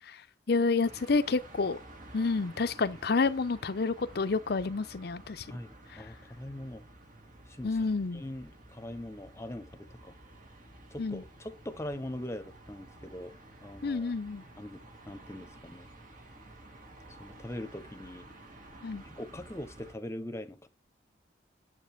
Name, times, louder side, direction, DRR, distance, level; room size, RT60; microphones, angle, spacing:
voice 1, 0.5-1.8 2.1-5.5 5.9-6.0 7.6-8.2 11.0-11.2 13.8-14.4 18.8-19.0, left 4 dB, 60° left, 0.6 m, -29 dB
sound 1, 0.8-19.9, right 1 dB, 50° right, 2.1 m, -52 dB
voice 2, 5.5-6.8 7.5-7.8 8.1-10.2 10.9-14.1 14.6-14.8 15.0-15.9 17.2-18.3 19.0-20.7, left 1 dB, 15° left, 1.0 m, -42 dB
7.7 x 7.4 x 3.5 m
head